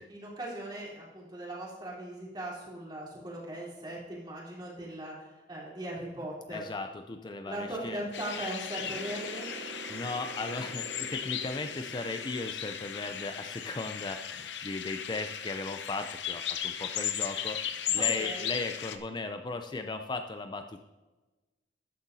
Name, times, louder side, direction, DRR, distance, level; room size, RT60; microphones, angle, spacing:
voice 1, 0.1-6.7 7.5-9.5 17.9-18.5, right 1 dB, 25° right, -4 dB, 3.3 m, -39 dB
voice 2, 6.5-8.0 9.9-20.8, left 3 dB, 25° left, 7 dB, 0.4 m, -37 dB
sound 1, 8.1-19.0, left 9 dB, 80° left, 0.7 m, -36 dB
sound 2, 8.8-14.3, right 3 dB, 85° right, 1.0 m, -47 dB
13.0 x 9.4 x 2.7 m, 1.2 s
head